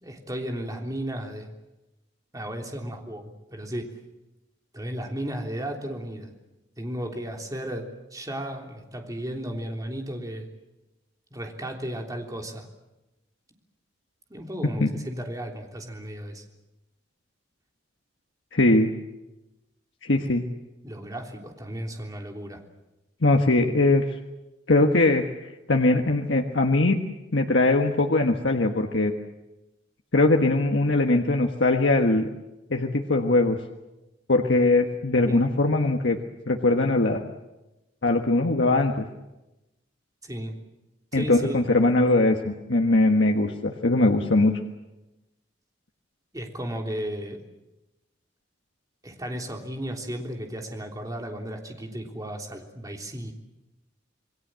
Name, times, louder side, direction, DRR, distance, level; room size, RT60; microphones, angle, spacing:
voice 1, 0.0-1.5 2.3-3.9 4.7-6.3 6.8-10.5 11.3-12.7 14.3-16.4 20.8-22.6 35.3-35.5 40.2-40.6 41.1-41.6 46.3-47.4 49.0-53.3, right 1 dB, 20° right, 2 dB, 3.4 m, -34 dB
voice 2, 18.5-18.9 20.0-20.4 23.2-24.0 24.7-27.0 27.3-29.1 30.1-32.3 32.7-33.6 34.3-36.2 36.5-37.2 38.0-39.0 41.1-44.6, left 2 dB, 75° left, 3 dB, 1.5 m, -21 dB
28.0 x 21.5 x 7.7 m, 1.0 s
head